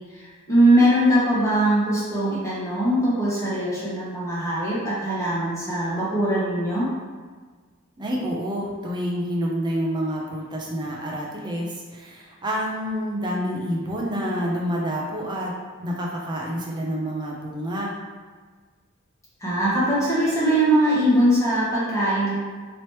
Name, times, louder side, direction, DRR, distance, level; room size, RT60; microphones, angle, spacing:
voice 1, 0.1-6.9 19.4-22.3, right 1 dB, 15° left, -9 dB, 1.1 m, -21 dB
voice 2, 8.0-15.5 15.8-17.9, equal, 20° right, -3 dB, 0.6 m, -28 dB
3.0 x 3.0 x 3.0 m, 1.5 s
head